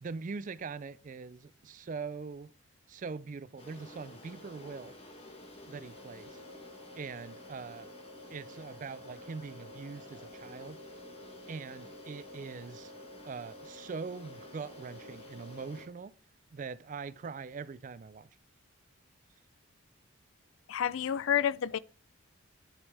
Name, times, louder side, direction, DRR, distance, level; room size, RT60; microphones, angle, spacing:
voice 1, 0.0-2.5 2.9-4.9 5.7-6.4 7.0-7.9 8.3-10.8 11.5-12.9 13.3-16.1 16.5-18.3, right 5 dB, 40° right, 0.3 m, -42 dB
sound 1, 3.6-15.9, left 1 dB, 30° left, 1.6 m, -49 dB
voice 2, 20.7-21.8, left 9 dB, 70° left, 0.4 m, -29 dB
9.7 x 5.3 x 3.4 m
head